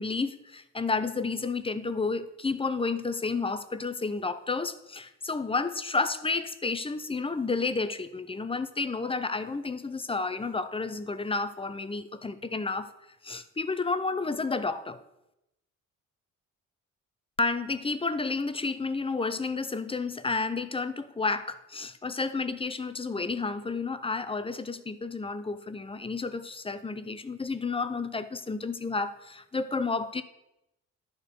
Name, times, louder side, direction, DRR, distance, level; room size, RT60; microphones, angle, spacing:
voice 1, 0.0-12.9 13.2-15.0 17.4-30.2, left 4 dB, 20° left, 12 dB, 0.6 m, -31 dB
10.5 x 4.7 x 6.6 m, 0.88 s
cardioid pair, 90°, 30 cm